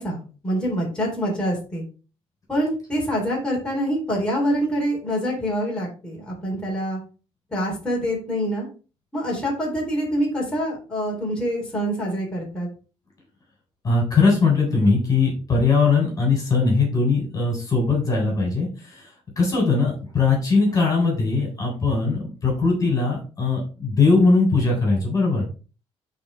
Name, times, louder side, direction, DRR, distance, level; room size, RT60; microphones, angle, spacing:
voice 1, 0.0-1.8 2.5-7.0 7.5-8.7 9.1-12.7, equal, 10° left, -4 dB, 3.8 m, -25 dB
voice 2, 13.8-19.1 19.4-25.5, left 4 dB, 30° left, -1 dB, 3.7 m, -20 dB
11.5 x 4.3 x 3.4 m, 0.35 s
cardioid pair, 135°, 11 cm